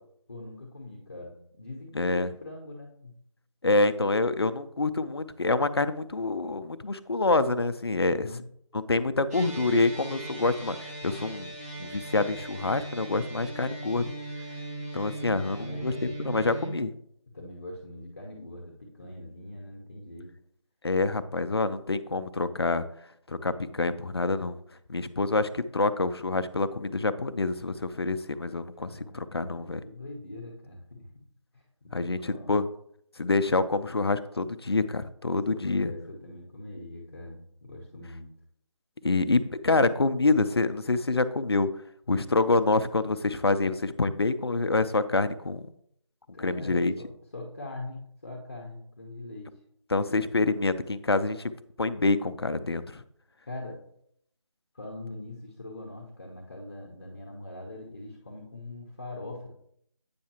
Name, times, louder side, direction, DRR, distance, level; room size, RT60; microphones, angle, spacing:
voice 1, 0.3-3.2 8.1-8.4 15.4-16.5 17.3-20.3 28.8-31.1 31.5-32.6 35.3-38.3 46.3-47.1 47.3-49.5 53.5-53.8 54.7-59.5, left 2 dB, 30° left, 0 dB, 0.8 m, -42 dB
voice 2, 1.9-2.3 3.6-8.3 8.7-11.5 11.8-14.1 14.9-16.9 20.8-22.8 23.3-24.6 24.9-28.9 29.1-29.8 31.9-32.6 33.2-35.9 39.0-41.7 42.1-45.6 46.4-46.9 49.9-51.5 51.8-53.0, left 3 dB, 55° left, 13 dB, 0.4 m, -26 dB
sound 1, 9.3-16.8, right 2 dB, 30° right, 2.6 m, -39 dB
8.5 x 5.7 x 2.8 m, 0.70 s
figure-of-eight pair, 170°, 16 cm